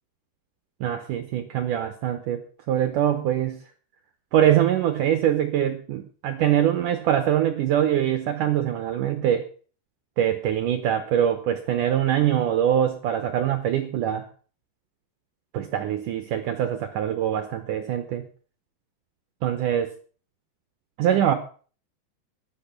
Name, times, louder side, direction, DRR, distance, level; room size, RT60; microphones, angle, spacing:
voice 1, 0.8-2.4 2.7-3.6 4.3-9.5 10.2-14.2 15.5-18.2 19.4-19.9 21.0-21.3, right 10 dB, 75° right, 9 dB, 1.9 m, -23 dB
13.5 x 11.0 x 5.9 m, 0.41 s
omnidirectional pair, 5.0 m